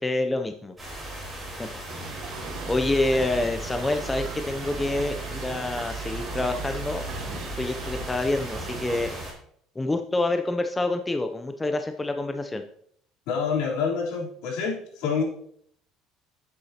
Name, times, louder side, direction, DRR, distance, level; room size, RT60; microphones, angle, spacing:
voice 1, 0.0-0.7 1.6-1.7 2.7-9.1 9.8-12.6, left 2 dB, 10° left, 6 dB, 0.5 m, -27 dB
sound 1, 0.8-9.3, right 1 dB, 10° right, 3.7 m, -36 dB
sound 2, 1.9-9.2, right 6 dB, 55° right, 1.3 m, -40 dB
voice 2, 13.3-15.2, left 5 dB, 75° left, -3 dB, 3.5 m, -27 dB
11.0 x 8.1 x 2.8 m, 0.66 s
cardioid pair, 165°, 0 cm